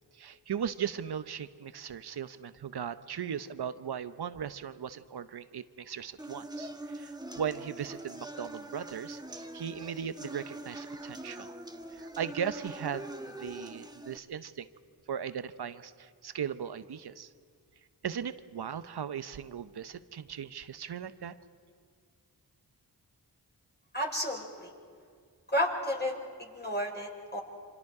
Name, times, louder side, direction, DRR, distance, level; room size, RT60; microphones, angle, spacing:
voice 1, 0.1-11.5 11.9-14.7 15.1-17.3 18.0-21.3, right 8 dB, 70° right, 13 dB, 0.9 m, -38 dB
sound 1, 6.2-14.2, right 1 dB, 10° right, 1.5 m, -43 dB
voice 2, 23.9-24.7 25.5-27.4, equal, 25° left, 0 dB, 5.0 m, -32 dB
27.5 x 25.0 x 4.9 m, 2.1 s
cardioid pair, 50°, 41 cm